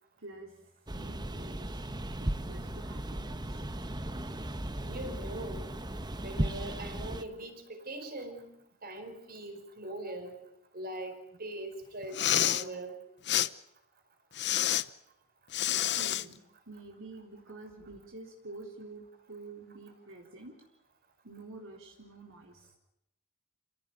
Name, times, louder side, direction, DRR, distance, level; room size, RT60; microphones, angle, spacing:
voice 1, 0.2-1.8 2.2-3.7 15.7-20.6 21.2-22.8, right 2 dB, 60° right, 1 dB, 3.9 m, -49 dB
sound 1, 0.9-7.3, right 1 dB, 20° right, 1.1 m, -36 dB
voice 2, 4.8-5.6 6.2-8.5 8.8-10.4 10.7-12.9, right 1 dB, 40° right, 7 dB, 4.8 m, -41 dB
Respiratory sounds, 12.0-12.6 13.3-13.5 14.4-14.8 15.5-16.2, left 12 dB, 50° left, 0.9 m, -28 dB
29.0 x 17.5 x 9.3 m, 0.81 s
head